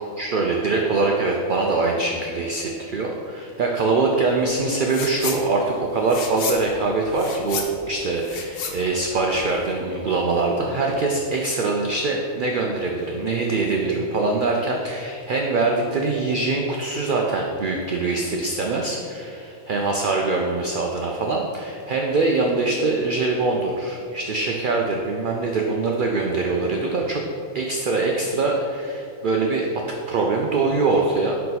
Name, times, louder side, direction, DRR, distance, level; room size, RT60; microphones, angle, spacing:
voice 1, 0.0-27.2 27.5-31.6, right 3 dB, 90° right, 1 dB, 0.4 m, -23 dB
sound 1, 4.8-5.4 5.7-9.7, left 5 dB, 55° left, 0.7 m, -32 dB
5.1 x 4.5 x 4.1 m, 2.5 s
omnidirectional pair, 1.4 m